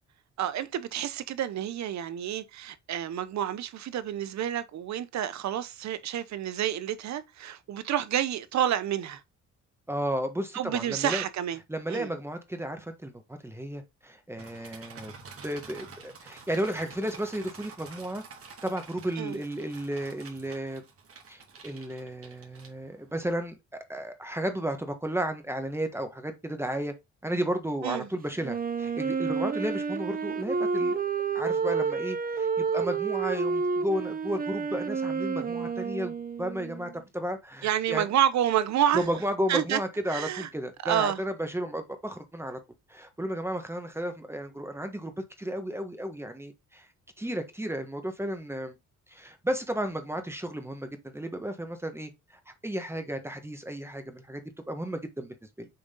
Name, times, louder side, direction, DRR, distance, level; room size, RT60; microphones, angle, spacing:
voice 1, 0.4-9.2 10.5-11.6 11.9-12.1 19.2-19.4 27.8-28.1 37.6-39.0 39.5-39.8 40.1-40.5 40.8-41.2, right 10 dB, 65° right, 0.9 m, -29 dB
voice 2, 9.9-11.2 11.7-18.2 18.6-20.8 21.3-26.9 27.2-31.0 31.3-38.1 38.9-42.6 42.9-46.9 47.2-48.8 49.1-52.1 52.5-54.4 54.7-55.7, right 1 dB, 10° right, 1.4 m, -33 dB
sound 1, 14.4-23.1, right 5 dB, 50° right, 2.2 m, -49 dB
Wind instrument woodwind instrument, 28.4-37.0, right 5 dB, 30° right, 0.8 m, -30 dB
6.9 x 3.8 x 3.8 m
cardioid pair, 90°, 30 cm